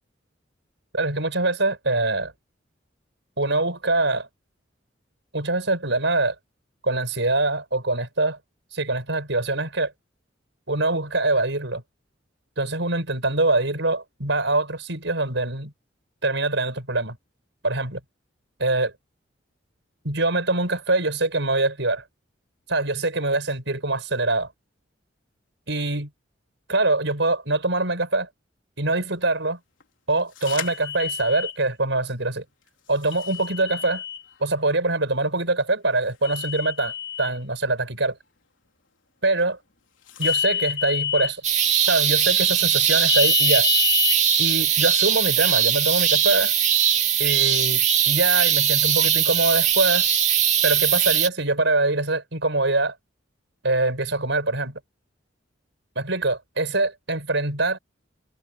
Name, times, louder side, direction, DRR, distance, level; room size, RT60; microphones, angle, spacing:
voice 1, 0.9-2.3 3.4-4.3 5.3-6.3 6.8-8.4 8.7-9.9 10.7-11.8 12.6-15.7 16.2-17.2 17.6-18.0 18.6-18.9 20.0-22.0 22.7-24.5 25.7-26.1 26.7-28.3 28.8-29.6 30.1-32.4 32.9-34.0 34.4-38.2 39.2-39.6 40.2-41.4 41.8-43.7 44.4-46.5 47.2-50.1 50.6-53.0 53.6-54.8 55.9-57.8, right 2 dB, 70° right, 8.0 m, -24 dB
sound 1, 30.4-31.5 33.1-34.2 36.2-37.3 40.2-41.3 43.1-44.2, left 9 dB, 85° left, 3.9 m, -27 dB
sound 2, 41.4-51.3, right 8 dB, 40° right, 2.3 m, -20 dB
head